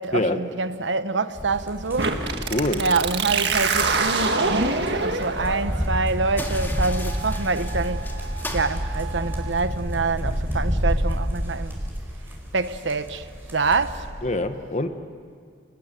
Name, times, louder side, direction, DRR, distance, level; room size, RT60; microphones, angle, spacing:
voice 1, 0.0-2.1 2.8-4.4 4.9-8.1 8.5-11.7 12.5-13.3 13.5-14.1, right 3 dB, 90° right, 1.0 m, -26 dB
sound 1, 1.3-14.1, equal, 10° right, 4.6 m, -30 dB
sound 2, 2.0-9.5, right 4 dB, 65° right, 1.9 m, -27 dB
voice 2, 2.5-2.8 14.2-14.9, left 1 dB, 40° left, 1.3 m, -24 dB
Paper basket, 6.3-9.7, left 1 dB, 10° left, 2.4 m, -38 dB
29.5 x 20.5 x 9.2 m
head